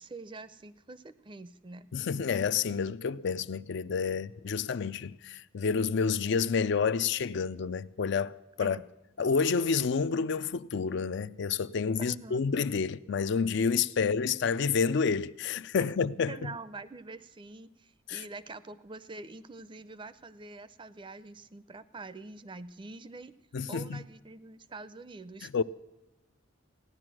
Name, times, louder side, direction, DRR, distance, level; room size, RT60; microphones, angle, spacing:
voice 1, 0.0-1.9 8.6-8.8 12.0-12.4 16.3-23.3 23.7-25.5, right 3 dB, 25° right, 0.5 m, -45 dB
voice 2, 1.9-8.8 9.2-16.5 18.1-18.2 23.5-24.0 25.4-25.6, left 5 dB, 60° left, 0.4 m, -29 dB
16.0 x 10.5 x 6.1 m
head